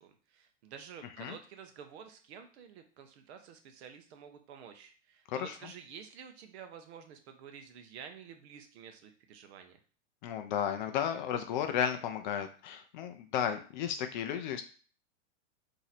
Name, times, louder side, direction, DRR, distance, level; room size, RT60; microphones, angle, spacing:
voice 1, 0.0-9.8, right 7 dB, 60° right, 7 dB, 0.8 m, -50 dB
voice 2, 10.2-14.6, left 9 dB, 40° left, 7 dB, 0.4 m, -33 dB
3.0 x 2.7 x 4.1 m, 0.40 s
supercardioid pair, 150°, 37 cm